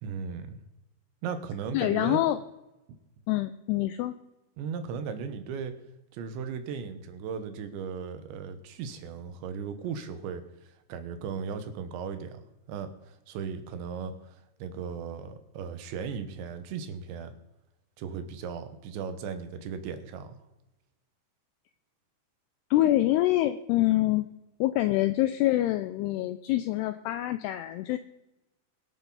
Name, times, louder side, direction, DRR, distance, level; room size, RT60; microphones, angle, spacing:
voice 1, 0.0-0.6 1.2-2.2 4.6-5.7 6.1-10.4 10.9-17.3 18.0-20.4, right 6 dB, 80° right, 9 dB, 3.4 m, -37 dB
voice 2, 1.7-2.4 3.3-4.1 22.7-24.3 24.6-28.0, left 15 dB, 85° left, 10 dB, 2.4 m, -25 dB
23.0 x 8.0 x 4.0 m, 0.97 s
omnidirectional pair, 5.2 m